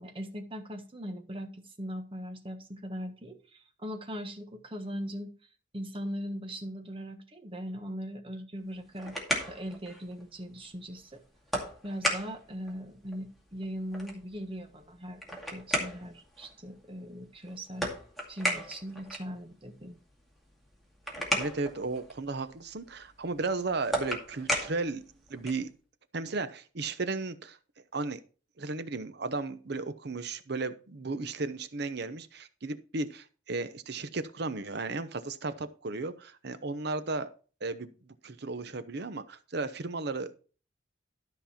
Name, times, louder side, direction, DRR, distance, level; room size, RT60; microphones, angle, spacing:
voice 1, 0.0-5.3 5.7-9.2 9.5-11.2 11.8-17.9 18.3-19.9, equal, 30° right, 6 dB, 1.3 m, -40 dB
sound 1, 8.6-25.7, equal, ahead, 2.3 m, -37 dB
voice 2, 21.3-25.0 25.3-25.7 26.1-27.6 27.9-28.2 28.6-37.3 37.6-40.3, right 3 dB, 60° right, 12 dB, 0.8 m, -35 dB
13.0 x 5.4 x 4.3 m, 0.37 s
head